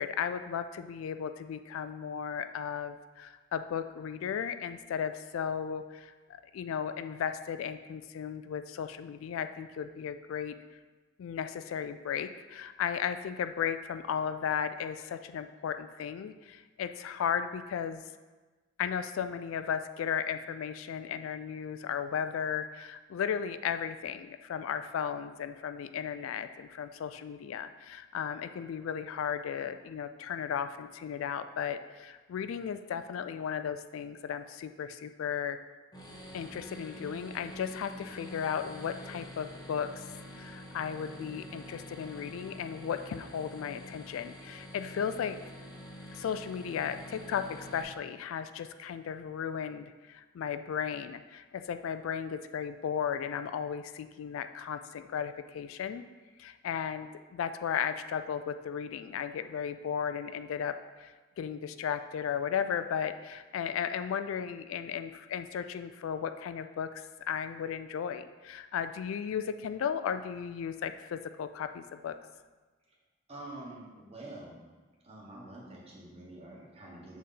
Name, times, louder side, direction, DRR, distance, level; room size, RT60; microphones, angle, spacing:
voice 1, 0.0-6.1 6.5-10.5 11.2-18.0 18.8-35.6 36.3-45.4 46.1-56.0 56.4-72.2, left 8 dB, 80° left, 10 dB, 0.3 m, -35 dB
sound 1, 35.9-47.8, equal, 20° left, 0.8 m, -47 dB
voice 2, 73.3-74.7 75.0-77.2, right 1 dB, 30° right, -3 dB, 1.2 m, -47 dB
6.5 x 4.1 x 3.8 m, 1.3 s
head